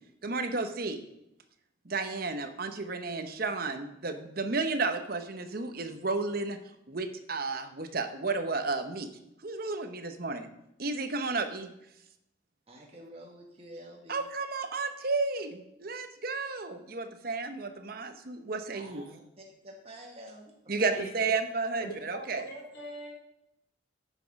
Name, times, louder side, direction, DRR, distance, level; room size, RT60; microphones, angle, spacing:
voice 1, 0.2-1.0 1.8-6.6 6.9-9.1 9.4-10.5 10.8-11.7 14.1-19.0 20.7-22.4, right 3 dB, 50° right, 8 dB, 0.9 m, -32 dB
voice 2, 12.7-14.2 18.7-21.0, right 1 dB, 30° right, 0 dB, 1.3 m, -49 dB
voice 3, 21.8-23.1, right 1 dB, 55° left, -2 dB, 3.7 m, -41 dB
9.2 x 6.3 x 5.9 m, 0.83 s
head